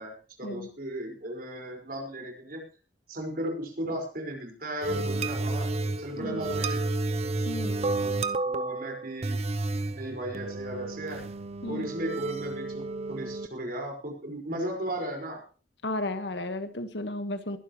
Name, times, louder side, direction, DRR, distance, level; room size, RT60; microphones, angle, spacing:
voice 1, 0.0-2.6 3.1-5.7 6.0-6.9 7.8-8.1 8.4-9.4 9.9-11.2 11.7-15.4, right 1 dB, 55° right, 2 dB, 5.2 m, -36 dB
sound 1, 4.8-13.5, right 2 dB, 35° right, 0.8 m, -31 dB
voice 2, 7.4-7.7 11.6-11.9 15.8-17.6, left 1 dB, 85° left, 9 dB, 1.6 m, -33 dB
21.5 x 11.5 x 3.2 m, 0.34 s
head